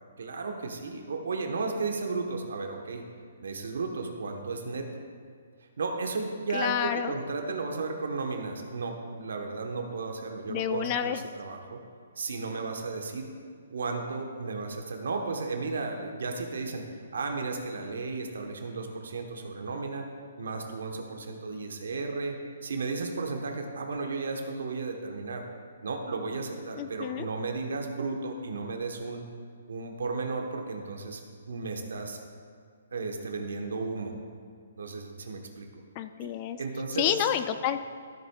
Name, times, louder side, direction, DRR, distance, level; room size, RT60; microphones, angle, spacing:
voice 1, 0.2-3.0 3.4-4.9 5.8-11.8 12.2-13.3 13.7-16.8 17.1-20.0 20.4-22.4 22.6-25.4 25.8-29.2 29.7-31.2 31.5-32.2 32.9-34.1 34.8-35.8 36.2-36.3 36.6-37.3, right 3 dB, 80° right, 3 dB, 1.1 m, -34 dB
voice 2, 6.5-7.1 10.5-11.2 26.8-27.3 36.0-36.6 37.0-37.8, left 10 dB, 30° left, 10 dB, 0.3 m, -29 dB
13.5 x 8.0 x 2.4 m, 2.2 s
hypercardioid pair, 160°, 0 cm